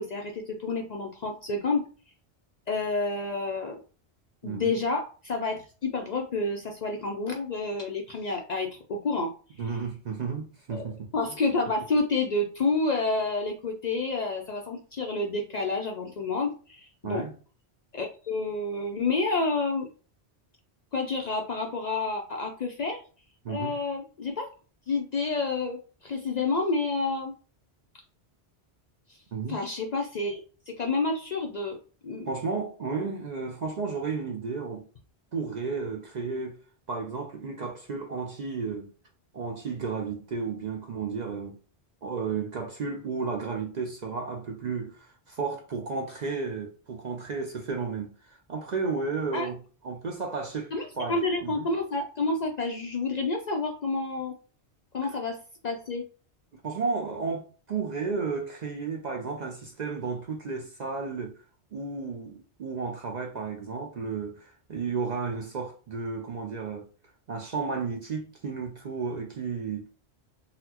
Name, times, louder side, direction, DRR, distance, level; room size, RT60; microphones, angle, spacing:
voice 1, 0.0-1.9 2.7-3.8 4.4-9.3 10.7-10.9 11.1-17.3 17.9-19.9 20.9-23.0 23.5-24.5 24.9-27.3 29.1-29.2 29.5-31.8 32.0-32.3 49.3-49.5 50.7-54.4 54.9-56.0, left 3 dB, 55° left, 0.5 m, -29 dB
voice 2, 4.4-4.7 9.6-11.1 17.0-17.3 23.4-23.8 29.3-29.6 32.3-34.9 35.3-36.6 36.9-38.9 39.3-41.6 42.0-49.6 49.8-51.7 56.6-61.4 61.7-66.9 67.3-69.9, right 4 dB, 55° right, 0.5 m, -33 dB
4.0 x 2.0 x 2.8 m
omnidirectional pair, 1.1 m